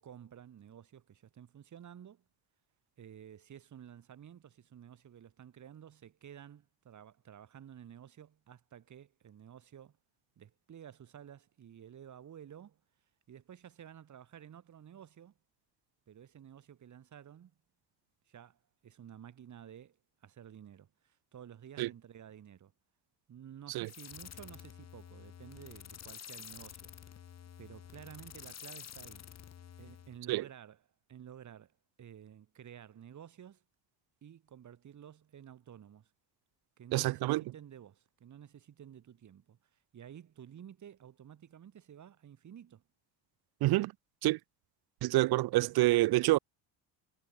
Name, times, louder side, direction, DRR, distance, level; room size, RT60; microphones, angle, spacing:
voice 1, 0.0-2.2 3.0-10.0 10.4-12.8 13.3-15.3 16.1-17.5 18.3-22.7 23.3-26.9 27.6-29.3 29.8-30.8 31.1-33.6 34.2-36.1 36.8-42.8, right 9 dB, 40° right, 4.2 m, -52 dB
sound 1, 23.8-30.2, left 9 dB, 35° left, 2.5 m, -50 dB
voice 2, 36.9-37.4 43.6-43.9 44.2-44.4 45.0-46.4, right 18 dB, 60° right, 0.7 m, -27 dB
cardioid pair, 140°, 44 cm